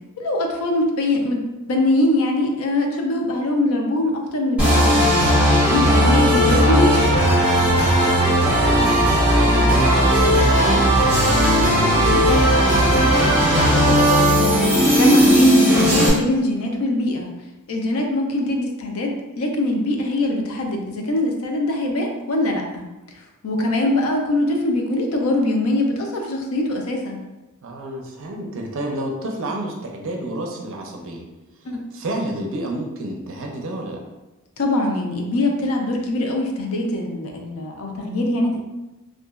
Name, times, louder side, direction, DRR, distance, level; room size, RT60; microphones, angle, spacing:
voice 1, 0.2-5.2 5.7-7.1 15.0-17.3 17.7-22.8 23.4-27.2 31.6-31.8 34.6-38.6, left 1 dB, 65° left, 2 dB, 0.4 m, -22 dB
sound 1, 4.6-16.1, equal, 5° right, 1.3 m, -16 dB
voice 2, 7.6-14.2 27.6-31.2 31.9-34.0, right 1 dB, 60° right, 1 dB, 0.5 m, -30 dB
2.8 x 2.4 x 2.3 m, 1.1 s
head